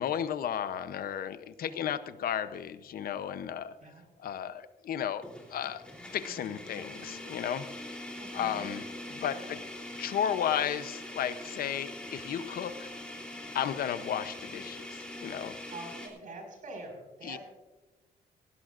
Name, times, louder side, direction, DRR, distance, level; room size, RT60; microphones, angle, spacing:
voice 1, 0.0-3.7 4.2-5.2 5.5-5.8 6.1-7.7 8.3-8.8 9.2-9.6 10.0-12.9 13.5-15.6 17.2-17.4, left 9 dB, 75° left, 12 dB, 0.8 m, -33 dB
sound 1, 2.5-2.7 3.2-3.3 5.2-16.1, left 1 dB, 5° left, 3.3 m, -43 dB
voice 2, 8.1-8.8 9.1-9.6 15.7-17.4, right 2 dB, 60° right, 3 dB, 5.2 m, -46 dB
18.0 x 17.5 x 2.5 m, 1.1 s
wide cardioid pair, 160°, 15 cm